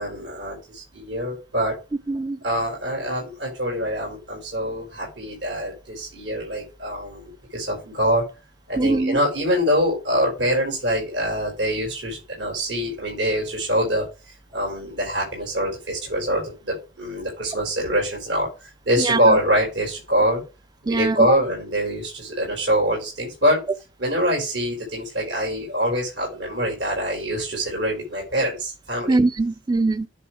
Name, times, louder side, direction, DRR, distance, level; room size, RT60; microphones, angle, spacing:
voice 1, 0.0-1.7 2.4-8.2 8.7-14.0 14.5-20.4 20.8-23.6 24.0-29.2, equal, 80° right, 4.7 m, -24 dB
voice 2, 2.1-2.4 8.8-9.2 19.0-19.4 20.9-21.4 29.1-30.1, right 3 dB, 20° right, 0.5 m, -22 dB
9.9 x 3.5 x 4.8 m
head